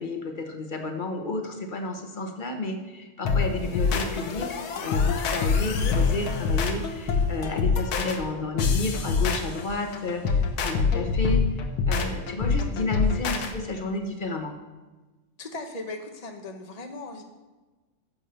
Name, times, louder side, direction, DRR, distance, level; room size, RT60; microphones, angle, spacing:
voice 1, 0.0-11.4 11.9-14.5, left 3 dB, 40° left, 5 dB, 0.7 m, -31 dB
sound 1, 3.3-13.5, left 5 dB, 80° left, 1.8 m, -25 dB
voice 2, 15.4-17.2, left 2 dB, 65° left, 4 dB, 0.4 m, -38 dB
10.5 x 7.3 x 6.7 m, 1.2 s
omnidirectional pair, 2.2 m